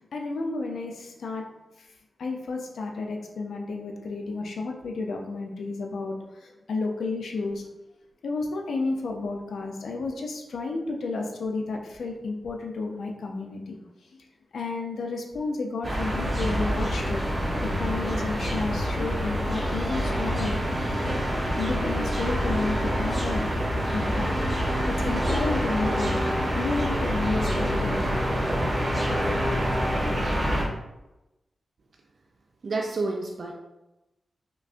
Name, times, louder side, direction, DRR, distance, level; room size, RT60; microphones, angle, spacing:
voice 1, 0.0-1.4 1.8-1.9 2.2-7.6 8.2-13.8 14.1-14.2 14.5-17.3 17.6-20.6 21.6-23.5 23.9-24.4 24.9-26.1 26.5-28.1, left 3 dB, 90° left, 1 dB, 0.5 m, -32 dB
sound 1, 15.8-30.7, equal, 30° right, 0.9 m, -26 dB
voice 2, 32.6-33.5, right 3 dB, 55° right, 1 dB, 0.4 m, -29 dB
5.1 x 2.5 x 2.3 m, 0.97 s
wide cardioid pair, 105°, 0 cm